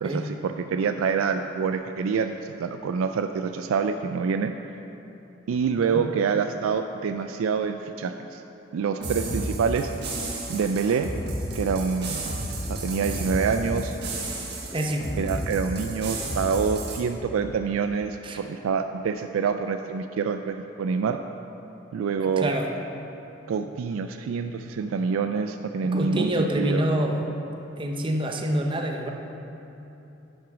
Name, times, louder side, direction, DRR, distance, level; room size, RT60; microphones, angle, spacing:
voice 1, 0.0-2.3 2.6-4.5 5.5-8.4 8.7-9.9 10.5-11.1 11.5-12.2 12.7-14.0 15.2-21.2 21.9-22.5 23.5-26.8, right 5 dB, 85° right, 8 dB, 0.3 m, -26 dB
sound 1, 9.0-17.0, right 1 dB, 55° right, 1.4 m, -32 dB
voice 2, 14.7-15.1 18.2-18.4 22.2-22.7 25.8-27.3 27.8-29.1, right 1 dB, 25° right, 3 dB, 0.6 m, -27 dB
10.5 x 6.2 x 5.0 m, 2.9 s
head